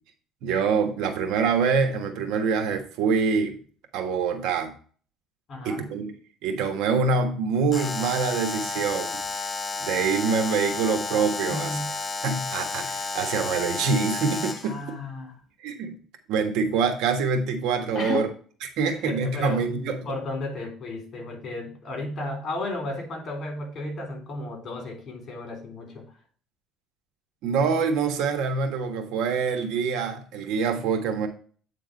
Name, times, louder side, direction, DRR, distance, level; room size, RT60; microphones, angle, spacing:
voice 1, 0.4-3.6 3.9-4.7 5.6-6.1 6.4-9.2 9.8-11.7 12.2-14.8 15.6-15.9 16.3-18.3 18.8-20.0 27.4-31.3, right 5 dB, 80° right, 6 dB, 1.4 m, -25 dB
voice 2, 5.5-5.9 11.5-11.9 14.6-15.3 17.9-18.3 18.9-19.6 20.1-26.0, left 2 dB, 45° left, 3 dB, 3.6 m, -33 dB
Alarm, 7.7-14.7, left 4 dB, 25° left, 0.8 m, -32 dB
8.5 x 3.8 x 5.2 m, 0.42 s
cardioid pair, 115°, 0 cm